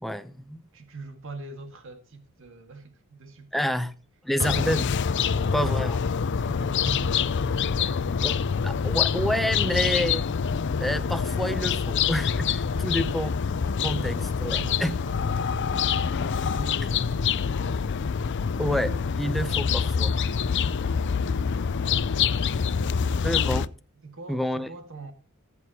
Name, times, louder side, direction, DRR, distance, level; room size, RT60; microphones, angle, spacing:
voice 1, 0.0-0.6 3.5-3.9 4.2-4.9 5.5-6.0 8.2-8.3 8.6-10.2 10.8-13.3 13.8-14.9 18.6-20.1 23.2-23.7 24.3-24.7, equal, ahead, 0.7 m, -28 dB
voice 2, 0.7-3.7 5.1-5.8 6.3-8.2 12.7-13.2 13.9-17.6 22.6-23.1 24.0-25.1, right 3 dB, 60° right, 1.9 m, -43 dB
sound 1, 4.4-23.6, left 6 dB, 55° left, 0.5 m, -26 dB
18.5 x 8.1 x 2.9 m
head